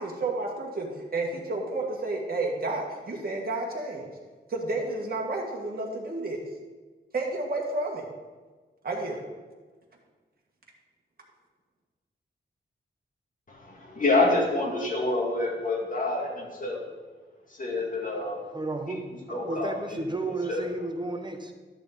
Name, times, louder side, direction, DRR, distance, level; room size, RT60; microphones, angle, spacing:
voice 1, 0.0-4.1 4.5-6.4 7.1-8.1 8.8-9.2, right 2 dB, 50° right, -1 dB, 1.8 m, -31 dB
voice 2, 13.5-16.8 17.5-18.5 18.9-19.0 19.3-20.0 20.3-20.6, left 2 dB, 40° left, -2 dB, 2.3 m, -27 dB
voice 3, 18.5-19.0 19.3-21.5, right 2 dB, 20° right, 5 dB, 1.0 m, -32 dB
12.0 x 6.8 x 4.0 m, 1.4 s
wide cardioid pair, 115°, 20 cm